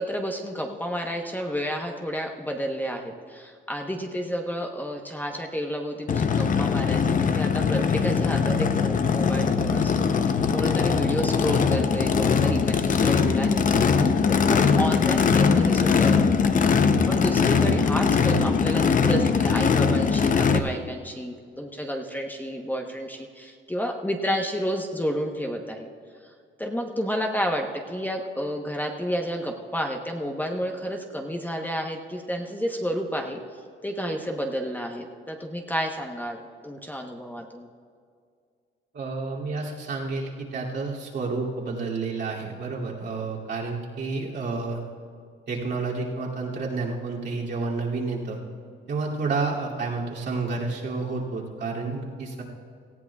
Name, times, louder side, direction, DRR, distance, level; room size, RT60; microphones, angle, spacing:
voice 1, 0.0-16.5 17.1-25.9 26.6-33.4 33.8-37.7, equal, 10° left, 2 dB, 1.0 m, -31 dB
Race car auto racing / Idling / Accelerating revving vroom, 6.1-20.6, left 5 dB, 40° left, 0.7 m, -21 dB
voice 2, 38.9-44.8 45.5-48.4 48.9-52.4, right 3 dB, 60° right, -4 dB, 2.7 m, -30 dB
18.5 x 14.5 x 2.4 m, 2.2 s
cardioid pair, 90°, 20 cm